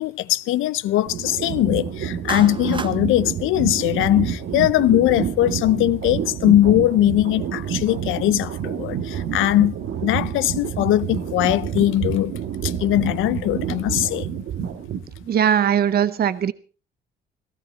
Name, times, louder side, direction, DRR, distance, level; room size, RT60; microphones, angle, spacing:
voice 1, 0.0-9.7 10.0-12.4 12.6-14.3, left 14 dB, 85° left, 0.7 m, -20 dB
sound 1, 1.1-15.3, right 8 dB, 85° right, 1.6 m, -28 dB
Clapping, 2.3-3.0, right 4 dB, 25° right, 1.1 m, -31 dB
voice 2, 15.3-16.5, right 9 dB, 50° right, 0.7 m, -19 dB
16.0 x 14.5 x 4.4 m
cardioid pair, 90°, 20 cm